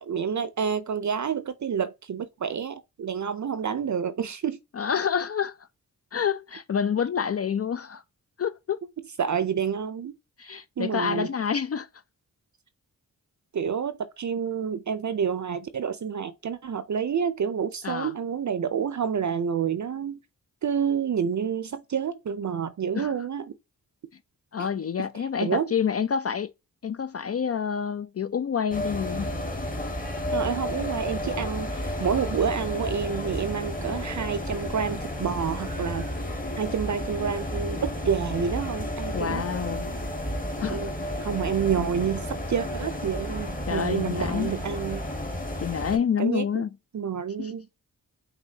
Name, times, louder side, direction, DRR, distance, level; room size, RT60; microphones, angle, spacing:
voice 1, 0.0-4.6 9.2-10.1 10.8-11.3 13.5-20.2 20.6-23.5 25.4-25.7 30.3-36.1 36.6-39.4 40.7-40.9 41.2-45.0 46.2-46.6 46.9-47.7, right 7 dB, 50° right, 0.6 m, -28 dB
voice 2, 4.7-5.5 6.1-8.0 8.4-8.8 10.4-11.9 17.8-18.1 23.0-23.1 24.5-26.5 26.8-29.3 39.1-39.9 40.6-40.9 43.7-44.5 45.6-46.7 47.4-47.5, left 7 dB, 40° left, 0.4 m, -28 dB
sound 1, 28.7-46.0, left 1 dB, 20° left, 1.5 m, -32 dB
5.7 x 2.7 x 2.8 m
cardioid pair, 40°, 38 cm